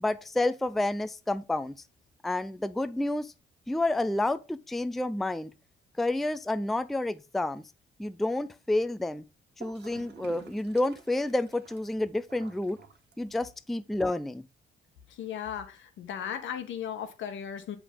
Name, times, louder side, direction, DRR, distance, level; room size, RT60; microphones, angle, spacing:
voice 1, 0.0-1.8 2.2-3.3 3.7-5.5 6.0-7.6 8.0-9.2 9.6-12.8 13.2-14.4, left 2 dB, ahead, 0.4 m, -29 dB
Gurgling / Toilet flush, 9.6-13.6, right 6 dB, 60° right, 1.2 m, -51 dB
voice 2, 15.1-17.8, left 8 dB, 75° left, 1.2 m, -36 dB
6.9 x 5.0 x 3.6 m
cardioid pair, 90°, 20 cm